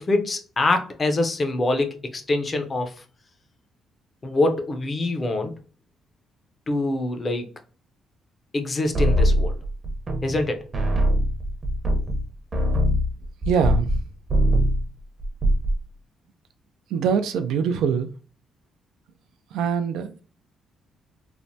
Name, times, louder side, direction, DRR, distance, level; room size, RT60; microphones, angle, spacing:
voice 1, 0.0-2.9 4.2-5.5 6.7-7.5 8.5-9.6 10.2-10.7, left 2 dB, 35° left, 0.5 m, -24 dB
sound 1, 8.9-10.5 10.7-14.0 14.3-14.9 15.2-15.8, equal, 35° right, 0.7 m, -21 dB
voice 2, 13.5-13.9 16.9-18.1 19.5-20.2, right 7 dB, 85° right, 0.3 m, -23 dB
3.2 x 2.0 x 2.7 m
cardioid pair, 90°, 0 cm